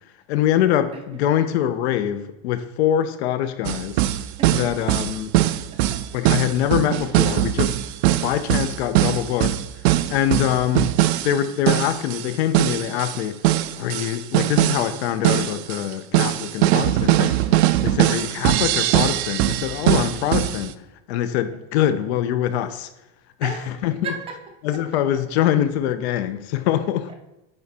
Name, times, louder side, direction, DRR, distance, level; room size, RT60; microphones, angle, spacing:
voice 1, 0.3-4.0 4.5-5.3 6.1-7.7 8.2-9.5 10.1-11.0 11.2-13.4 13.8-17.4 17.8-20.7 21.1-22.9 23.4-23.5 23.8-23.9 24.6-27.1, left 11 dB, 75° left, 0.7 m, -23 dB
sound 1, 3.6-12.3 12.5-15.0 15.2-20.7, right 14 dB, 70° right, 0.5 m, -21 dB
voice 2, 5.7-6.0 17.8-18.5 21.5-21.6 23.4-24.4 24.7-25.0 27.1-27.2, right 5 dB, 15° right, 0.4 m, -36 dB
9.0 x 3.5 x 4.2 m
supercardioid pair, 175°, 33 cm